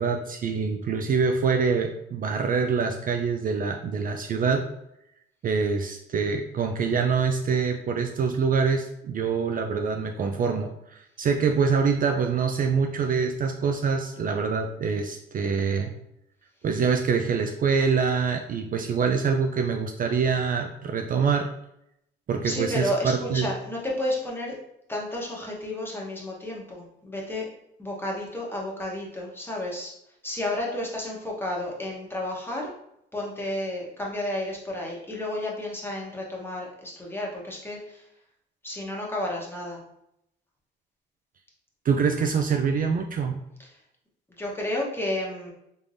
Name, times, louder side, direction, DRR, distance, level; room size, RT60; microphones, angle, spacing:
voice 1, 0.0-4.7 5.4-15.9 16.6-21.5 22.3-23.5 41.8-43.4, right 5 dB, 45° right, 4 dB, 0.4 m, -25 dB
voice 2, 22.4-24.6 24.9-27.5 27.8-29.9 30.2-32.7 33.1-38.0 38.6-39.8 43.6-43.7 44.4-45.5, left 1 dB, 10° left, -3 dB, 1.1 m, -31 dB
3.5 x 3.3 x 2.6 m, 0.79 s
cardioid pair, 90°, 20 cm